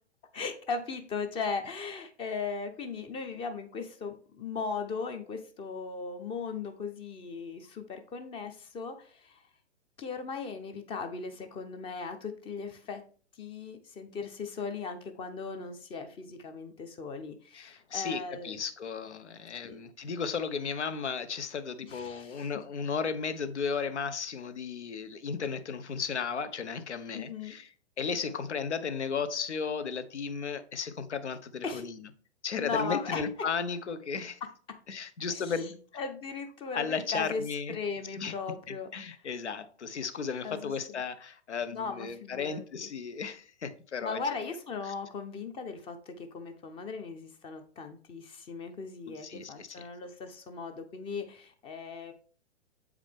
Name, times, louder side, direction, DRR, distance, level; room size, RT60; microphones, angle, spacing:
voice 1, 0.3-9.4 10.0-13.0 13.4-18.6 19.6-19.8 21.8-22.5 27.1-27.5 31.6-31.9 32.5-33.2 35.3-35.6 35.9-37.4 37.7-38.9 40.4-41.0 41.7-42.9 44.0-52.1, left 4 dB, 15° left, 0.6 m, -38 dB
voice 2, 17.5-27.7 28.0-32.0 32.4-34.4 34.9-35.8 36.7-37.8 38.2-38.3 38.7-44.2 44.9-45.0 49.1-49.8, left 5 dB, 80° left, 0.9 m, -35 dB
7.5 x 4.9 x 3.5 m
figure-of-eight pair, 120°, 34 cm